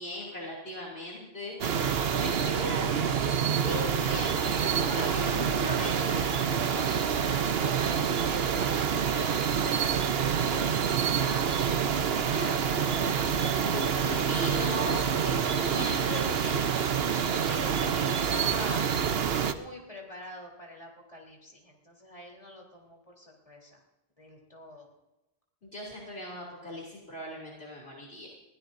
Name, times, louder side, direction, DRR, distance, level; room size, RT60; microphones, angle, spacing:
voice 1, 0.0-1.6 2.3-2.8 3.5-6.9 13.6-16.7 25.7-28.3, left 1 dB, 65° left, -5 dB, 3.1 m, -38 dB
sound 1, 1.6-19.5, right 7 dB, 65° right, 1.0 m, -27 dB
voice 2, 2.0-3.1 4.8-5.5 6.7-14.4 17.5-18.8 19.4-23.8 24.2-24.9, left 1 dB, 30° left, -1 dB, 3.7 m, -45 dB
22.0 x 15.5 x 2.6 m, 0.96 s
omnidirectional pair, 1.1 m